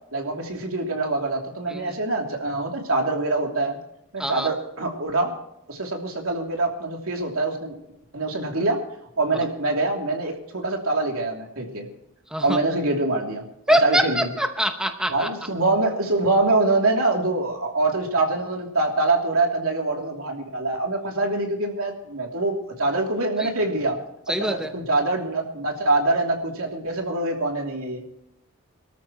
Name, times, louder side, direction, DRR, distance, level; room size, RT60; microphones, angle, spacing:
voice 1, 0.1-3.8 4.1-5.4 5.7-7.7 8.1-8.8 9.2-11.9 12.4-14.2 15.1-24.0 24.4-28.0, right 2 dB, 75° right, 1 dB, 3.0 m, -24 dB
voice 2, 13.7-15.3 23.4-23.5 24.3-24.7, right 1 dB, 5° right, 5 dB, 0.8 m, -24 dB
24.0 x 13.5 x 3.1 m, 0.79 s
head